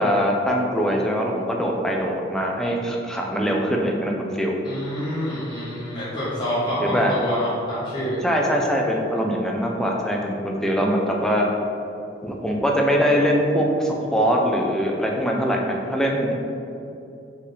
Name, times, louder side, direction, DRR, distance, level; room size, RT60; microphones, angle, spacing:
voice 1, 0.0-4.6 6.8-7.1 8.2-11.5 12.2-16.4, equal, 5° left, -1 dB, 0.4 m, -22 dB
voice 2, 4.6-8.2, equal, 25° left, -11 dB, 1.0 m, -27 dB
4.6 x 3.5 x 3.1 m, 2.7 s
head